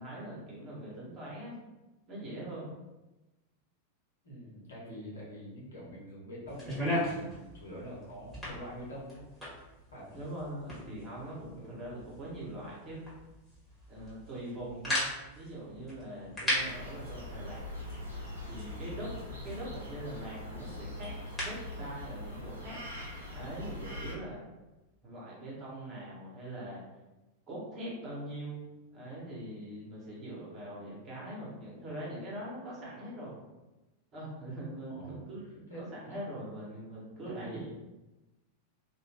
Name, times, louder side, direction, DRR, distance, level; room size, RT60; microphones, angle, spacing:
voice 1, 0.0-1.6 2.1-2.7 10.1-13.0 13.9-15.0 15.3-17.7 18.5-19.1 19.4-22.8 23.3-24.4 25.0-26.8 27.5-28.6 28.9-33.3 34.1-37.7, right 1 dB, 30° right, -5 dB, 1.3 m, -42 dB
voice 2, 4.2-9.2 9.9-10.2 11.5-11.8 16.1-16.4 34.9-35.2 35.7-36.2 37.2-37.7, equal, 70° left, -5 dB, 1.1 m, -45 dB
sound 1, 6.5-21.7, left 1 dB, 5° left, 1.5 m, -39 dB
sound 2, 16.5-24.1, left 1 dB, 80° right, 0.7 m, -42 dB
2.5 x 2.5 x 3.4 m, 1.0 s
figure-of-eight pair, 90°, 0 cm